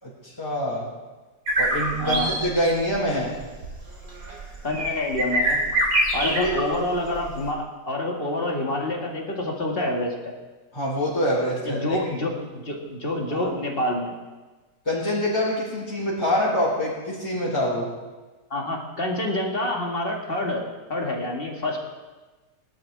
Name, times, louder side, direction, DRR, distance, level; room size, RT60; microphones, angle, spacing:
voice 1, 0.0-0.9 1.6-3.4 6.2-6.5 10.7-12.0 13.3-13.5 14.8-17.9, equal, 15° left, -6 dB, 4.2 m, -25 dB
sound 1, 1.5-7.5, right 1 dB, 65° right, 3.3 m, -25 dB
voice 2, 2.0-2.4 4.6-5.6 6.1-10.3 11.6-14.1 18.5-21.8, left 1 dB, 35° left, 0 dB, 2.1 m, -27 dB
21.0 x 12.0 x 3.6 m, 1.2 s
omnidirectional pair, 1.8 m